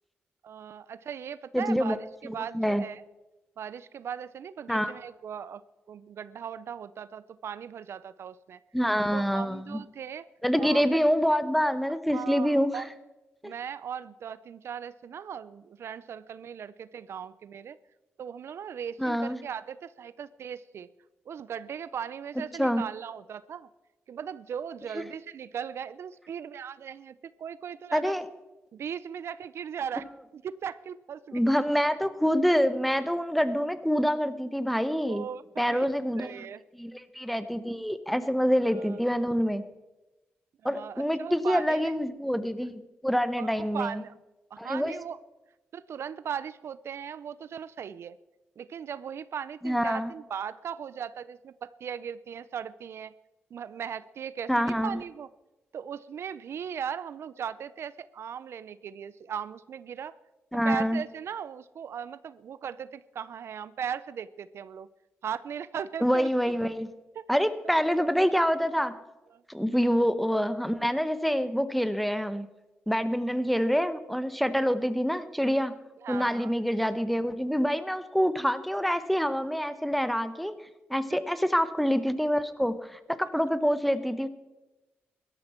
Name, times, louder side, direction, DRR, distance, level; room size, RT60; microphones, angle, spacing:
voice 1, 0.4-3.0 3.6-5.6 5.9-8.6 9.1-10.3 10.6-10.8 12.1-12.9 13.4-17.8 18.2-20.9 21.3-23.7 24.1-28.1 28.7-30.1 30.3-31.6 35.0-35.4 35.7-35.9 36.2-36.6 38.7-39.0 40.6-41.9 43.4-44.2 44.5-45.2 45.7-48.2 48.6-53.1 53.5-55.3 55.7-60.1 60.6-64.9 65.2-66.3 67.2-67.3 69.3-69.4 76.0-76.5, right 8 dB, 75° right, 17 dB, 0.5 m, -38 dB
voice 2, 1.5-2.0 2.2-2.8 4.7-4.9 8.7-9.8 10.4-12.8 13.4-13.5 19.0-19.4 22.6-22.8 24.9-25.0 27.9-28.2 31.3-35.3 35.6-36.5 36.7-39.6 40.6-44.0 44.6-44.9 49.6-50.1 54.5-55.0 60.5-61.0 66.0-66.9 67.3-68.9 69.5-72.5 72.9-75.7 76.1-80.5 80.9-84.3, equal, ahead, 12 dB, 1.0 m, -26 dB
16.5 x 13.0 x 4.4 m, 1.0 s
cardioid pair, 75°, 5 cm